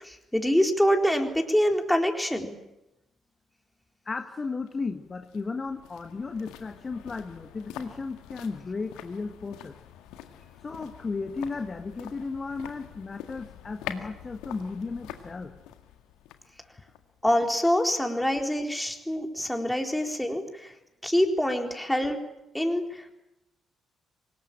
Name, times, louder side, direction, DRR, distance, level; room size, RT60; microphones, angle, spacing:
voice 1, 0.0-2.6 17.2-20.7 21.0-22.2 22.5-23.1, equal, 5° left, 3 dB, 4.1 m, -25 dB
voice 2, 4.0-9.7 10.6-15.5, left 4 dB, 35° left, 7 dB, 1.5 m, -35 dB
sound 1, 4.7-17.8 18.1-18.2, left 10 dB, 70° left, 1.8 m, -45 dB
25.0 x 20.5 x 8.9 m, 0.90 s
figure-of-eight pair, 40°, 0 cm